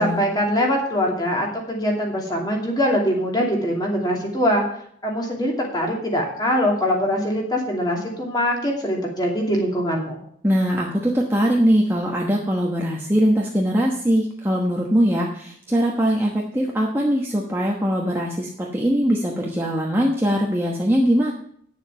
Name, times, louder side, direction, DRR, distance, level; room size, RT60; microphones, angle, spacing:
voice 1, 0.0-4.6 5.0-10.2, equal, 20° left, -1 dB, 2.6 m, -23 dB
voice 2, 10.4-21.3, equal, 10° right, -2 dB, 1.2 m, -21 dB
9.7 x 7.3 x 6.9 m, 0.63 s
head